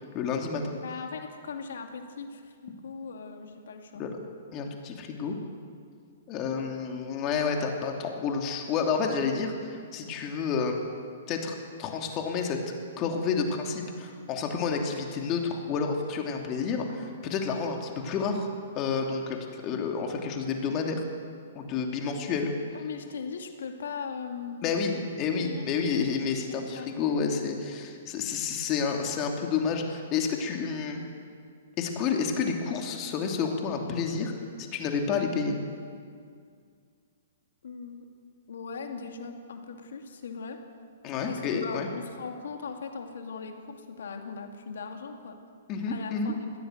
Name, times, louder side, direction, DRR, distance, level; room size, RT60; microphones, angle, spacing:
voice 1, 0.1-0.7 4.0-4.1 4.5-5.3 6.3-10.8 11.3-12.6 13.0-18.5 18.7-21.0 21.5-22.5 24.6-31.0 31.8-34.3 34.6-35.6 41.0-41.9 45.7-46.3, left 5 dB, 35° left, 2 dB, 2.9 m, -30 dB
voice 2, 0.8-4.0 22.7-24.7 25.4-25.6 26.4-26.9 37.6-38.1 38.5-40.6 41.2-45.4 45.9-46.4, left 5 dB, 70° left, 4 dB, 2.5 m, -39 dB
20.5 x 16.5 x 8.0 m, 2.2 s
hypercardioid pair, 125°, 0 cm